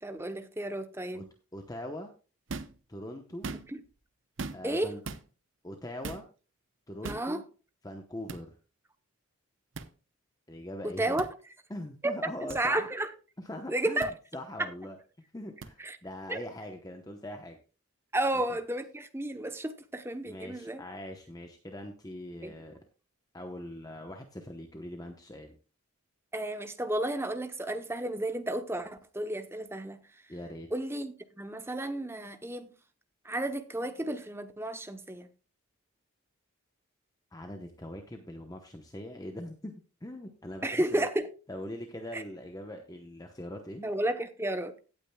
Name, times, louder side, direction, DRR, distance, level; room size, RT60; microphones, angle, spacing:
voice 1, 0.0-1.3 3.7-3.8 4.6-4.9 7.0-7.4 10.8-11.3 12.0-12.1 12.4-13.1 13.7-14.1 14.6-14.7 15.8-16.0 16.3-16.4 18.1-20.8 22.4-22.5 26.3-30.0 30.7-32.7 33.2-35.3 40.6-41.3 42.1-42.2 43.8-44.7, right 1 dB, 10° right, 0.7 m, -32 dB
voice 2, 1.5-2.1 2.9-3.5 4.5-5.0 5.6-6.2 6.9-7.4 7.8-8.5 10.5-11.2 11.7-12.9 13.4-15.0 15.3-17.6 20.3-22.8 23.3-25.5 30.3-30.7 37.3-39.7 40.0-41.0 41.5-43.9, left 1 dB, 15° left, 0.8 m, -42 dB
sound 1, 2.5-2.8 3.3-3.9 4.4-4.8 5.0-5.2 6.0-6.3 7.0-7.3 8.3-8.4 9.7-9.9 11.2-11.3 12.5-12.6 14.0-14.1 15.6-15.7, right 3 dB, 55° right, 0.8 m, -39 dB
17.0 x 8.8 x 2.2 m
head